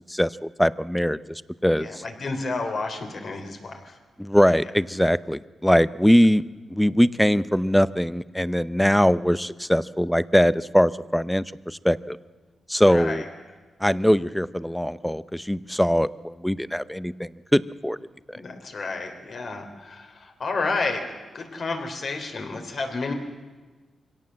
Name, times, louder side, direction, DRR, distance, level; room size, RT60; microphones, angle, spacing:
voice 1, 0.6-2.0 4.2-6.4 6.7-12.2 12.7-13.2 13.8-18.0 18.3-18.4, equal, 5° left, 17 dB, 0.6 m, -21 dB
voice 2, 1.8-4.0 4.6-4.7 12.8-13.2 18.3-21.0 21.3-23.1, left 3 dB, 55° left, 4 dB, 3.5 m, -31 dB
24.0 x 17.0 x 7.6 m, 1.3 s
cardioid pair, 95°, 0 cm